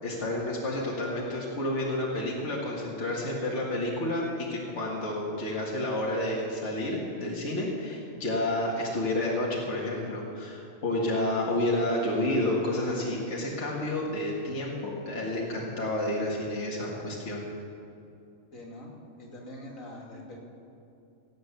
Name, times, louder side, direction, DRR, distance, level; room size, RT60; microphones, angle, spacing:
voice 1, 0.0-17.4, left 1 dB, 55° left, -4 dB, 2.2 m, -30 dB
voice 2, 18.5-18.9 19.2-20.4, left 1 dB, 75° left, -1 dB, 2.9 m, -43 dB
17.5 x 7.9 x 8.2 m, 2.6 s
omnidirectional pair, 1.4 m